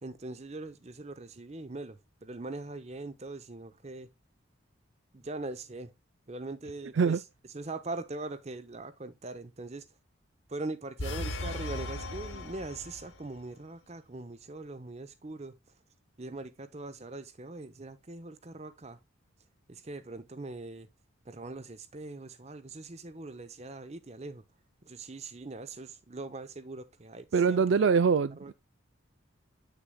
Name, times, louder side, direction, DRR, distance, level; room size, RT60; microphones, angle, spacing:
voice 1, 0.0-4.1 5.1-5.9 6.3-7.2 7.5-9.9 10.5-15.6 16.2-19.0 19.7-20.9 21.3-24.4 24.8-27.6 28.4-28.5, right 2 dB, 30° right, 0.7 m, -41 dB
sound 1, 11.0-13.3, left 1 dB, 75° left, 1.4 m, -37 dB
voice 2, 27.3-28.5, right 5 dB, 65° right, 0.4 m, -24 dB
7.8 x 6.6 x 2.2 m
head